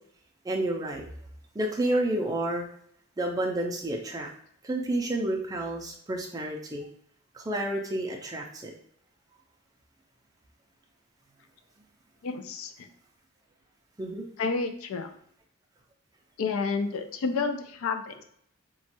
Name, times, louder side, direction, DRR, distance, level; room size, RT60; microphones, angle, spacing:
voice 1, 0.4-1.0 1.5-2.6 3.2-4.3 4.6-6.9 7.3-8.7 14.0-14.3, right 1 dB, 15° right, 1 dB, 0.4 m, -30 dB
voice 2, 12.2-12.9 14.4-15.1 16.4-18.2, left 4 dB, 75° left, 7 dB, 0.4 m, -30 dB
3.0 x 2.2 x 2.9 m, 0.66 s
head